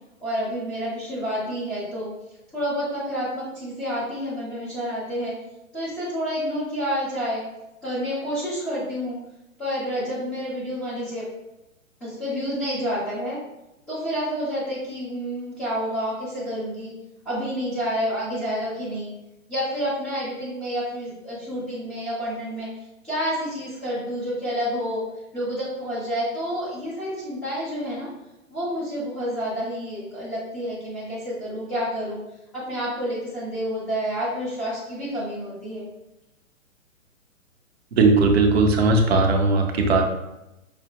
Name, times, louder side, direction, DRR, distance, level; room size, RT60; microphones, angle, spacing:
voice 1, 0.2-2.1 2.5-5.3 5.7-7.4 7.8-9.2 9.6-11.2 12.0-13.4 13.9-16.9 17.2-19.1 19.5-22.7 23.0-25.0 25.3-28.1 28.5-32.2 32.5-35.8, equal, 5° left, -17 dB, 0.4 m, -29 dB
voice 2, 37.9-40.1, right 3 dB, 50° right, 3 dB, 0.8 m, -18 dB
5.6 x 2.1 x 3.6 m, 0.93 s
figure-of-eight pair, 130°, 41 cm